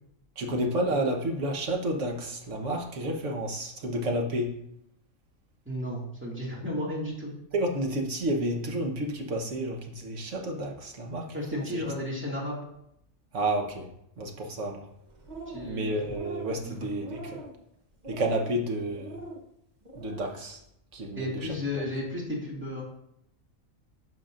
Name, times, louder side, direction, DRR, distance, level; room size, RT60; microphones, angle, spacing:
voice 1, 0.4-4.5 7.5-11.8 13.3-13.9 14.2-14.8 15.6-17.4 18.1-19.2 19.9-20.6 20.9-21.5 21.7-21.8, right 1 dB, 65° right, 2 dB, 1.5 m, -30 dB
voice 2, 5.7-7.3 11.3-12.6 15.5-16.0 16.6-16.9 21.2-22.8, left 1 dB, 10° right, -4 dB, 2.2 m, -33 dB
sound 1, 15.1-15.8 16.0-16.6 17.0-17.6 18.0-18.5 18.9-19.4 19.8-20.3, right 2 dB, 35° right, 1.1 m, -41 dB
10.5 x 5.9 x 2.6 m, 0.76 s
omnidirectional pair, 1.4 m